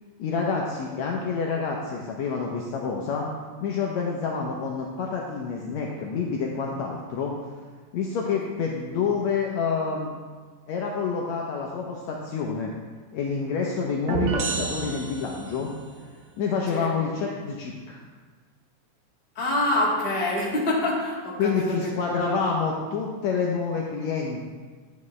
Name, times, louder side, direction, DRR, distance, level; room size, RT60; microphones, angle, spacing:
voice 1, 0.2-3.3 3.6-7.3 7.9-10.2 10.7-12.7 13.1-15.7 16.4-18.0 21.4-24.5, left 5 dB, 75° left, -1 dB, 1.8 m, -28 dB
sound 1, 14.1-15.8, right 4 dB, 75° right, 1.3 m, -29 dB
voice 2, 19.3-21.8 22.3-22.4, left 1 dB, 25° left, -5 dB, 1.5 m, -25 dB
11.0 x 8.2 x 3.2 m, 1.5 s
omnidirectional pair, 3.7 m